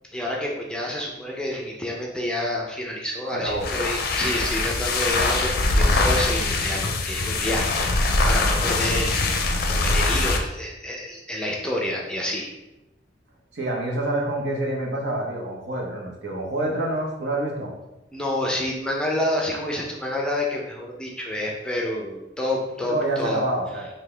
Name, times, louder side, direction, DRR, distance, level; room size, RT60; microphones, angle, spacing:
voice 1, 0.1-7.9 8.3-9.3 9.7-12.5 18.1-23.4, left 1 dB, 5° left, -2 dB, 0.5 m, -28 dB
voice 2, 3.3-3.9 13.5-17.7 22.8-23.9, right 1 dB, 65° right, -1 dB, 0.9 m, -27 dB
sound 1, 3.5-10.5, left 2 dB, 55° left, 0.5 m, -23 dB
3.9 x 2.8 x 3.3 m, 0.95 s
head